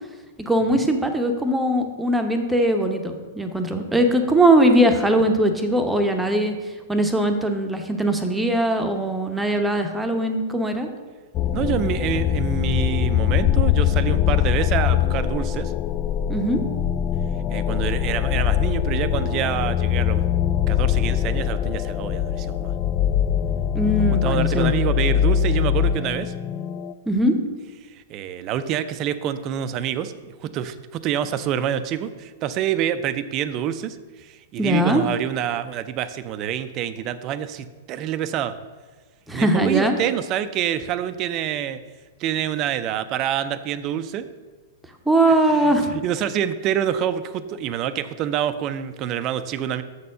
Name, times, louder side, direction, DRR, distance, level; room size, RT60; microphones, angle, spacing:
voice 1, 0.4-6.5 6.9-10.9 16.3-16.6 23.7-24.7 27.1-27.4 34.6-35.0 39.3-40.0 45.1-45.9, right 1 dB, 5° right, 5 dB, 0.8 m, -20 dB
sound 1, 11.3-26.9, left 10 dB, 30° left, 0.3 m, -22 dB
voice 2, 11.5-15.7 17.5-20.2 20.7-22.7 24.2-26.3 27.9-38.5 39.3-41.8 42.2-44.3 45.5-49.8, right 10 dB, 35° right, 12 dB, 0.4 m, -27 dB
6.7 x 4.2 x 6.5 m, 1.3 s
figure-of-eight pair, 105°, 0 cm